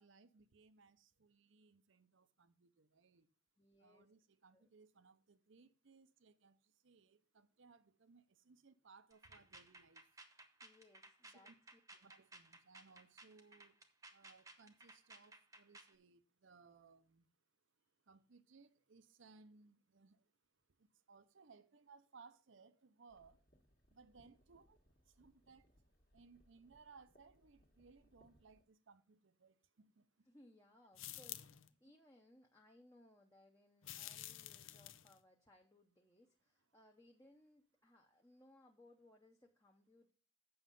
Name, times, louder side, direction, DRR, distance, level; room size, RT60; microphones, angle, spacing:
voice 1, 0.0-3.3 3.8-10.1 11.4-11.5 11.9-13.8 14.1-17.3 18.1-20.3 20.8-23.5 23.9-24.8 25.1-25.7 26.1-30.1, right 4 dB, 75° right, 0.7 m, -65 dB
voice 2, 3.6-4.1 4.5-4.7 10.6-11.8 24.5-24.7 30.2-40.1, left 1 dB, 15° left, 0.7 m, -67 dB
sound 1, 9.1-16.0, right 2 dB, 15° right, 0.9 m, -59 dB
sound 2, 23.1-28.6, equal, 45° left, 1.5 m, -73 dB
sound 3, 30.9-31.7 33.8-35.2, left 13 dB, 85° left, 0.6 m, -50 dB
7.9 x 6.2 x 5.3 m
head